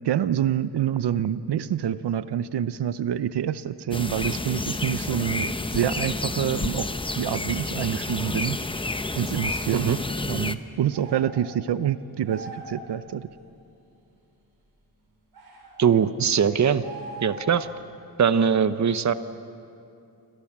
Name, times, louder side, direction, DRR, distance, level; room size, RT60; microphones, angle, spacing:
voice 1, 0.0-6.9 7.1-8.6 9.2-9.9 10.3-13.3, right 10 dB, 85° right, 14 dB, 0.8 m, -27 dB
sound 1, 3.9-10.6, left 2 dB, 15° left, 0.8 m, -30 dB
sound 2, 10.9-11.4 12.2-12.8 15.3-15.8 16.8-17.6, right 2 dB, 65° right, 5.8 m, -41 dB
voice 2, 15.8-16.8 17.2-17.7 18.2-19.1, right 7 dB, 45° right, 12 dB, 0.9 m, -21 dB
28.5 x 26.0 x 7.4 m, 2.6 s
wide cardioid pair, 145°, 40 cm